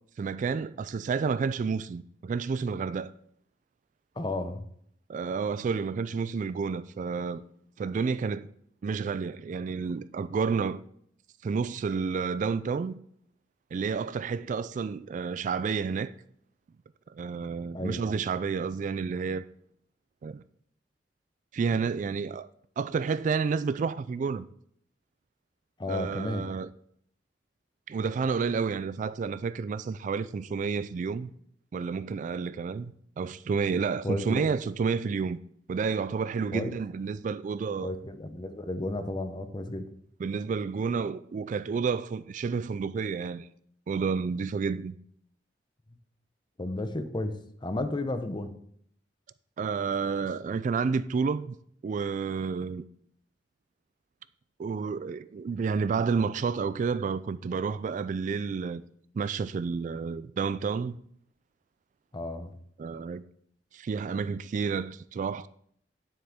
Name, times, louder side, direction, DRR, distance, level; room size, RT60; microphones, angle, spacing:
voice 1, 0.2-3.1 5.1-7.4 7.8-8.5 8.8-10.8 11.4-12.9 13.7-16.1 17.1-19.5 20.2-20.4 21.5-22.5 22.8-24.5 25.9-26.7 27.9-31.3 31.7-35.4 35.7-37.9 40.2-43.5 43.9-44.9 49.6-51.6 51.8-52.9 54.6-58.8 59.1-61.0 62.8-63.2 63.7-65.5, right 5 dB, 45° right, 0.3 m, -30 dB
voice 2, 4.2-4.6 17.7-18.0 25.8-26.5 34.0-34.4 36.5-36.7 37.8-39.9 46.6-47.4 47.6-48.5 62.1-62.5, left 2 dB, 25° left, 0.7 m, -33 dB
9.5 x 7.4 x 3.6 m
head